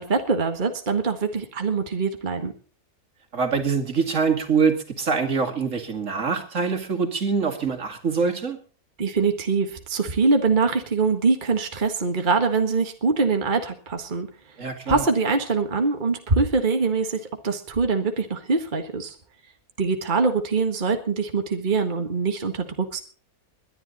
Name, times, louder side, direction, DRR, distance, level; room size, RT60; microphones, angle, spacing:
voice 1, 0.0-2.5 9.0-14.3 14.9-19.2 19.8-23.0, right 4 dB, 35° right, 5 dB, 1.7 m, -23 dB
voice 2, 3.3-8.6 14.6-15.0, right 5 dB, 55° right, 6 dB, 2.7 m, -24 dB
21.5 x 11.0 x 4.1 m, 0.39 s
omnidirectional pair, 1.6 m